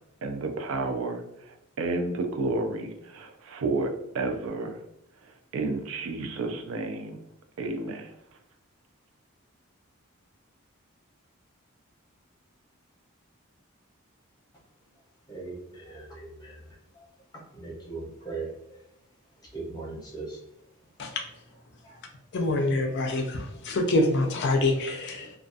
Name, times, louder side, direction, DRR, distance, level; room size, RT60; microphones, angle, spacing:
voice 1, 0.2-4.8 5.2-7.2 7.6-8.1, right 3 dB, 70° right, 6 dB, 0.4 m, -31 dB
voice 2, 15.3-16.6 16.9-17.0 17.5-18.8 19.5-20.4 21.8-22.0 22.9-23.0, right 3 dB, 20° left, -3 dB, 0.7 m, -39 dB
voice 3, 22.3-25.3, left 2 dB, 55° left, 3 dB, 0.4 m, -26 dB
2.3 x 2.3 x 2.5 m, 0.80 s
head